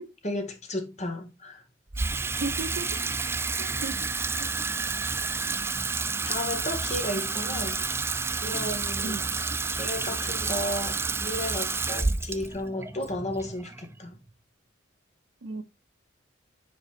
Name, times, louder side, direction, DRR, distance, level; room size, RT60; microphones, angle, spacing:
voice 1, 0.2-1.6 6.2-7.8 8.4-9.2 9.7-14.2, left 1 dB, 35° left, 1.5 m, -33 dB
Water tap faucet / Sink (filling or washing), 1.9-14.3, right 4 dB, 10° right, 0.3 m, -30 dB
voice 2, 2.4-2.9 3.6-4.0 4.4-4.5 5.4-5.5 6.4-6.6 7.1-7.7 9.0-9.4 15.4-15.6, right 2 dB, 80° right, 0.7 m, -36 dB
5.3 x 5.1 x 4.4 m
head